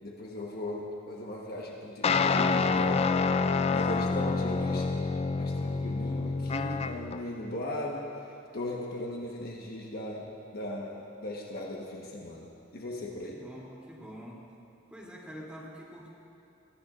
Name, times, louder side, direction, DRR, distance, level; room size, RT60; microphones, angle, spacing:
voice 1, 0.0-3.1 3.7-4.9 5.4-8.1 8.5-10.3 10.5-13.4, left 1 dB, 50° left, -2 dB, 1.3 m, -38 dB
sound 1, 2.0-7.2, left 4 dB, 30° left, 0.3 m, -27 dB
voice 2, 13.2-14.5 14.9-16.1, equal, 5° right, -6 dB, 3.0 m, -46 dB
22.5 x 14.0 x 2.5 m, 2.9 s
head